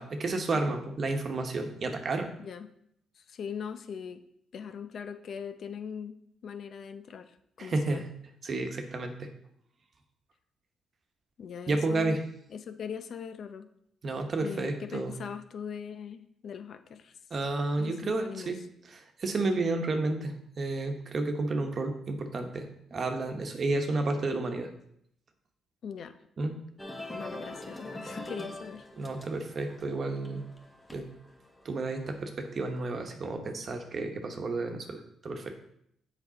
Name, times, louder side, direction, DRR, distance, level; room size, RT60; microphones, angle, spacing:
voice 1, 0.0-2.3 7.6-8.1 8.4-9.3 11.7-12.2 14.0-15.1 17.3-18.6 18.9-24.7 26.4-26.6 29.0-30.5 30.9-31.1 31.6-35.6, right 2 dB, 45° right, 5 dB, 1.1 m, -31 dB
voice 2, 2.4-2.7 3.2-4.2 4.5-8.0 11.4-12.2 12.5-13.7 14.4-17.2 17.8-18.5 25.8-26.2 27.1-28.9, left 7 dB, 60° left, 9 dB, 0.6 m, -41 dB
sound 1, 26.8-33.1, left 1 dB, 10° left, 1.2 m, -44 dB
7.3 x 5.2 x 4.0 m, 0.73 s
cardioid pair, 90°, 0 cm